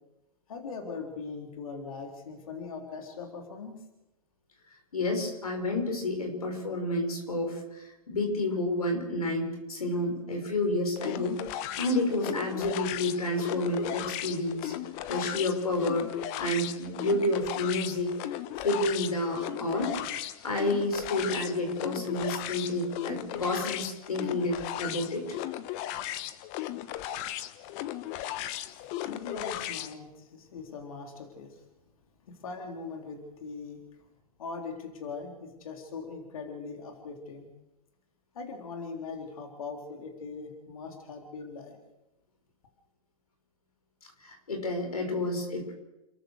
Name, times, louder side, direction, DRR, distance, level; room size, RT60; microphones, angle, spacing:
voice 1, 0.5-3.8 28.4-31.6 32.3-33.8 34.4-37.5 38.3-41.8, left 4 dB, 70° left, 3 dB, 3.8 m, -41 dB
voice 2, 4.9-11.4 11.8-14.7 15.1-16.1 16.4-20.0 20.4-25.3 44.2-45.7, left 1 dB, 90° left, 4 dB, 6.2 m, -30 dB
sound 1, 11.0-29.9, left 13 dB, 40° left, 1.2 m, -36 dB
29.5 x 13.5 x 6.5 m, 0.97 s
hypercardioid pair, 120°, 18 cm